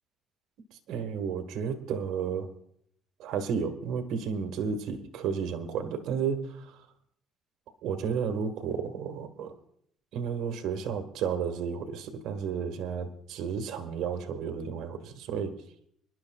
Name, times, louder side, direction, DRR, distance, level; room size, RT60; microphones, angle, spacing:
voice 1, 0.9-2.5 3.2-6.8 7.8-9.5 10.1-15.6, right 6 dB, 75° right, 6 dB, 1.6 m, -32 dB
26.0 x 11.5 x 2.4 m, 0.68 s
cardioid pair, 115°, 0 cm